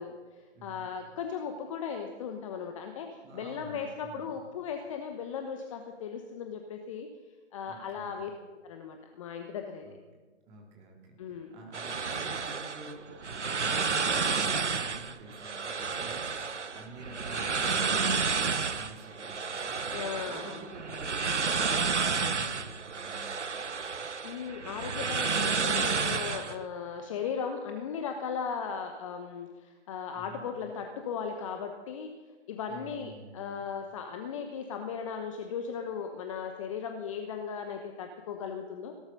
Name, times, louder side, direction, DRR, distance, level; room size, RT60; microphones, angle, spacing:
voice 1, 0.0-7.1 7.5-9.8 11.2-11.6 19.9-20.6 24.2-32.1 32.5-39.0, left 6 dB, 30° left, 5 dB, 1.0 m, -37 dB
voice 2, 0.5-0.9 3.2-4.4 7.6-8.3 9.8-9.9 10.5-23.8 30.1-30.5 32.7-33.6, right 2 dB, 20° right, 1 dB, 2.8 m, -49 dB
sound 1, 11.7-26.6, right 5 dB, 85° right, 0.9 m, -31 dB
17.5 x 12.5 x 5.4 m, 1.4 s
figure-of-eight pair, 135°, 35 cm